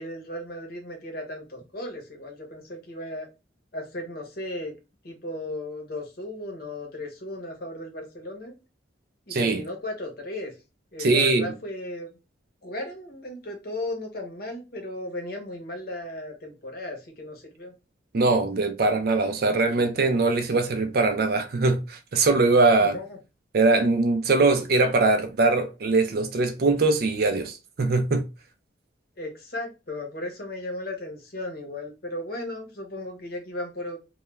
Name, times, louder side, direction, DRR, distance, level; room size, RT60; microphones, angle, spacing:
voice 1, 0.0-3.3 3.7-4.7 5.0-8.5 9.3-10.5 10.9-12.1 12.6-17.7 22.8-23.2 29.2-34.0, left 1 dB, 50° left, 0.8 m, -35 dB
voice 2, 11.0-11.5 18.1-23.0 23.5-28.2, right 3 dB, 55° right, 0.4 m, -22 dB
2.2 x 2.2 x 3.1 m
head